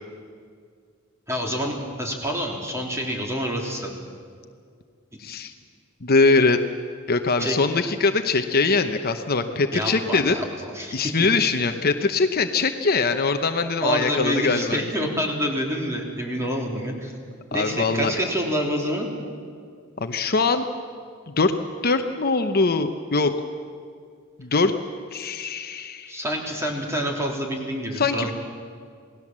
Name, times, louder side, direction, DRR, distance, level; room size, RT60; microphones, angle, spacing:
voice 1, 1.3-3.9 7.4-7.6 9.7-11.3 13.8-17.1 17.5-19.1 26.1-28.3, equal, 15° right, 0 dB, 3.5 m, -27 dB
voice 2, 5.2-5.5 6.0-6.6 7.1-10.4 10.9-14.8 17.5-18.1 20.0-20.7 21.3-21.5 21.8-23.3 24.4-24.7 25.1-26.2 27.9-28.3, left 3 dB, 45° left, 7 dB, 0.9 m, -22 dB
28.0 x 18.5 x 7.5 m, 2.2 s
head